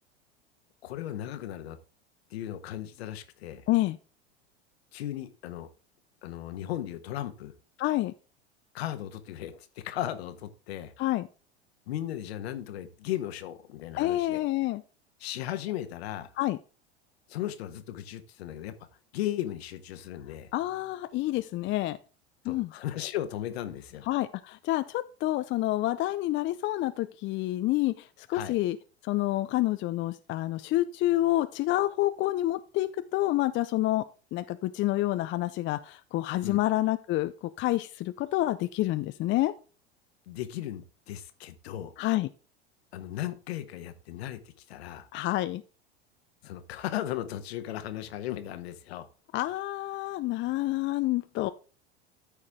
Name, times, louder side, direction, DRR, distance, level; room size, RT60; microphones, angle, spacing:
voice 1, 0.8-1.8 2.3-3.6 4.9-5.7 6.2-7.5 8.7-10.9 11.9-14.4 15.2-16.3 17.3-18.7 19.1-20.5 22.4-24.1 28.3-28.6 36.4-36.6 40.3-41.9 42.9-44.4 44.7-45.1 46.4-49.1, left 12 dB, 70° left, 9 dB, 1.3 m, -36 dB
voice 2, 3.7-4.0 7.8-8.1 11.0-11.3 14.0-14.8 16.4-16.6 20.5-22.0 22.4-22.7 24.1-28.8 29.0-34.0 34.3-39.5 42.0-42.3 45.1-45.6 49.3-51.5, left 16 dB, 35° left, 11 dB, 0.5 m, -28 dB
13.5 x 4.9 x 3.6 m, 0.35 s
hypercardioid pair, 85°, 33 cm